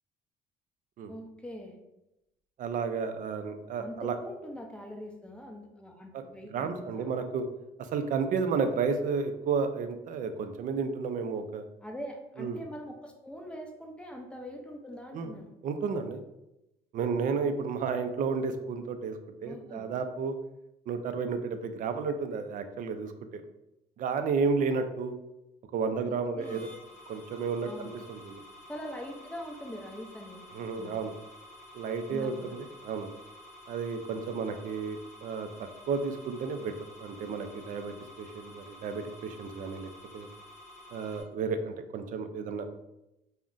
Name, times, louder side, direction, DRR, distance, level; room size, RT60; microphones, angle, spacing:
voice 1, 1.1-1.8 3.8-7.1 11.8-15.6 19.4-19.9 26.0-26.7 27.6-27.9 28.7-30.5 30.8-31.0 32.1-32.5, equal, 5° left, 2 dB, 0.5 m, -43 dB
voice 2, 2.6-4.1 6.1-6.2 6.5-7.5 7.9-11.6 12.4-12.6 15.1-15.3 15.6-16.2 16.9-20.4 20.9-23.4 24.0-25.1 25.7-26.7 27.1-28.4 30.5-31.1 31.7-32.4 32.8-33.1 33.7-35.5 35.9-40.3 40.9-42.7, right 5 dB, 50° right, 8 dB, 0.4 m, -32 dB
sound 1, 26.4-41.2, left 1 dB, 45° left, 0.8 m, -51 dB
2.4 x 2.1 x 3.7 m, 0.90 s
cardioid pair, 110°, 17 cm